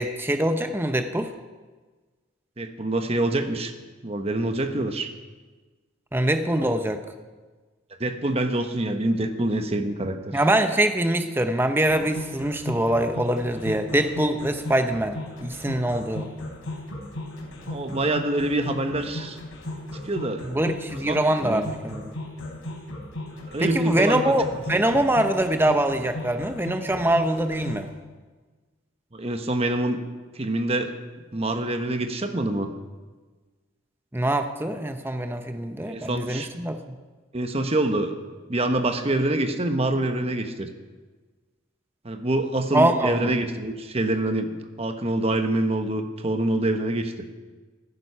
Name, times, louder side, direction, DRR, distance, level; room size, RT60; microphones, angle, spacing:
voice 1, 0.0-1.3 6.1-7.0 10.3-16.3 20.4-22.1 23.6-27.9 34.1-37.0 42.7-43.3, right 1 dB, 10° right, 7 dB, 0.7 m, -24 dB
voice 2, 2.6-3.7 4.0-5.1 8.0-10.4 17.6-19.4 20.0-20.5 21.1-21.2 21.4-21.6 23.5-24.3 24.7-24.9 29.1-30.0 30.3-30.9 31.3-32.7 35.9-36.5 37.3-38.2 38.5-40.7 42.0-47.1, right 1 dB, 30° right, 6 dB, 1.0 m, -26 dB
sound 1, 11.9-27.9, left 1 dB, 90° left, 4.2 m, -35 dB
14.5 x 14.0 x 5.6 m, 1.3 s
head